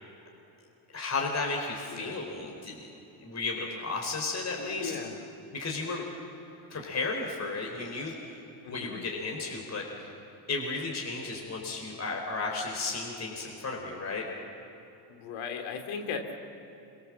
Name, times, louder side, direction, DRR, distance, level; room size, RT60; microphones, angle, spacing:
voice 1, 0.9-2.9 3.2-5.0 5.5-6.0 6.7-8.4 8.7-10.1 10.5-14.2, left 3 dB, 35° left, 0 dB, 4.4 m, -34 dB
voice 2, 4.6-5.2 6.7-7.0 8.6-9.0 15.1-16.3, left 5 dB, 80° left, 4 dB, 2.9 m, -38 dB
26.0 x 24.0 x 7.6 m, 3.0 s
supercardioid pair, 80°, 47 cm